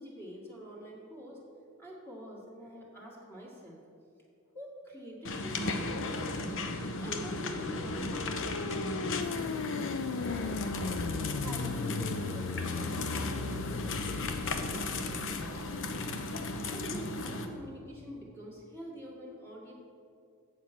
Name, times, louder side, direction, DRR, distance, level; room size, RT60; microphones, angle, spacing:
voice 1, 0.0-1.4 1.8-3.8 4.5-6.3 7.0-9.2 10.3-10.9 11.4-14.9 16.6-19.7, equal, 10° left, -4 dB, 1.9 m, -45 dB
sound 1, 5.2-17.5, left 2 dB, 60° left, 0.8 m, -35 dB
sound 2, 7.5-10.2 10.6-17.3, right 1 dB, 40° right, 1.0 m, -52 dB
sound 3, 7.7-14.8, left 6 dB, 75° left, 0.4 m, -38 dB
8.0 x 7.2 x 5.9 m, 2.5 s
head